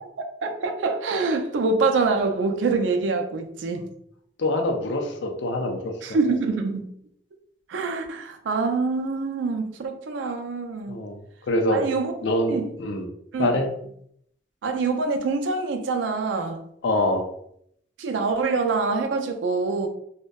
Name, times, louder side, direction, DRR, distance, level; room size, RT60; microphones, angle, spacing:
voice 1, 0.4-3.8 6.0-6.9 7.7-11.0 11.7-12.1 12.5-12.6 13.3-13.6 14.6-16.6 18.0-19.9, right 4 dB, 80° right, 0.4 m, -25 dB
voice 2, 4.4-5.9 10.9-11.2 11.5-11.8 12.2-13.1 13.4-13.7 16.8-17.2, left 1 dB, 75° left, 0.5 m, -24 dB
2.6 x 2.1 x 2.2 m
head